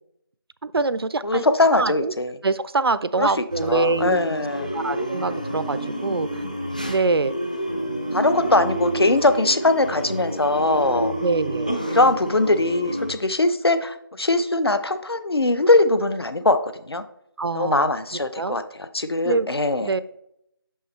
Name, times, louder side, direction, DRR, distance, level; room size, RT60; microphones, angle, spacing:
voice 1, 0.6-1.5 1.7-2.1 2.4-4.2 4.7-6.4 6.9-7.3 8.1-8.2 11.2-11.7 17.4-17.9 18.4-18.6 19.2-19.5 19.8-20.0, right 3 dB, 80° right, 15 dB, 0.4 m, -24 dB
voice 2, 1.2-2.3 3.2-3.3 3.6-4.7 8.1-11.1 11.9-16.6 16.9-17.0 17.5-19.9, left 2 dB, 85° left, 10 dB, 0.8 m, -21 dB
sound 1, 3.5-13.1, equal, 20° left, 0.4 m, -29 dB
6.5 x 5.5 x 3.2 m, 0.76 s
figure-of-eight pair, 175°, 13 cm